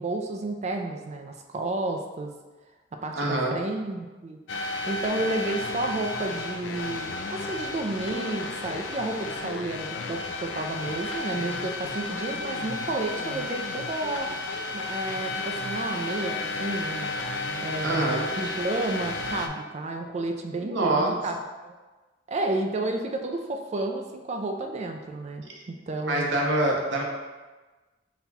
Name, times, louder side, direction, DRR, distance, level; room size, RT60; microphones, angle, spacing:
voice 1, 0.0-2.3 2.9-4.4 4.9-14.3 14.7-17.2 17.6-21.7 22.3-26.3, right 2 dB, 35° right, 4 dB, 0.4 m, -31 dB
voice 2, 3.1-3.5 17.8-18.3 20.6-21.2 26.0-27.0, right 2 dB, 70° right, -1 dB, 0.7 m, -25 dB
sound 1, 4.5-19.5, left 3 dB, 80° left, 0.4 m, -33 dB
4.1 x 2.3 x 4.1 m, 1.2 s
head